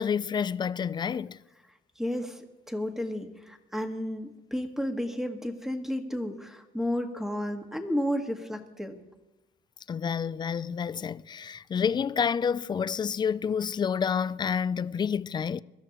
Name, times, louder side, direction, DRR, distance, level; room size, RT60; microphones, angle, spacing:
voice 1, 0.0-1.4 9.9-15.6, left 7 dB, 25° left, 0.4 m, -29 dB
voice 2, 2.0-2.4 2.7-9.0, equal, ahead, 1.6 m, -32 dB
24.0 x 13.0 x 3.0 m
cardioid pair, 110°, 17 cm